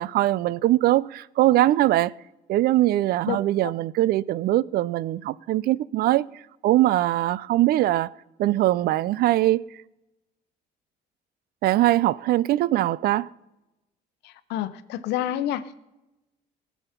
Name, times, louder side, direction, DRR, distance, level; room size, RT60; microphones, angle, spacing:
voice 1, 0.0-2.1 2.5-8.1 8.4-9.6 11.6-13.3, right 15 dB, 65° right, 0.4 m, -22 dB
voice 2, 14.5-15.7, left 12 dB, 90° left, 0.8 m, -28 dB
19.0 x 7.2 x 5.8 m
cardioid pair, 110°, 17 cm